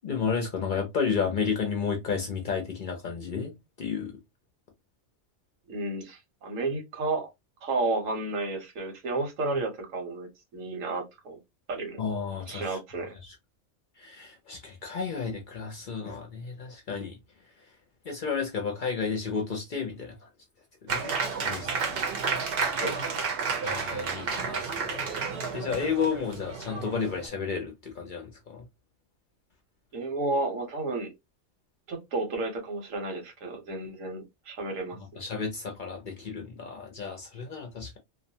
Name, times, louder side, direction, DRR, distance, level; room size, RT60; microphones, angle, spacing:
voice 1, 0.0-4.1 12.0-12.8 13.2-13.3 14.0-17.2 18.1-20.3 20.8-21.1 21.4-22.0 23.6-25.0 25.5-28.6 34.9-38.0, left 6 dB, 55° left, 0.6 m, -32 dB
voice 2, 5.7-7.3 7.6-11.4 11.7-12.0 12.5-13.2 22.7-23.3 29.9-31.1 31.9-35.0, right 2 dB, 85° right, 1.3 m, -32 dB
Applause, 20.9-27.3, right 5 dB, 60° right, 0.7 m, -31 dB
2.6 x 2.1 x 2.7 m
omnidirectional pair, 1.3 m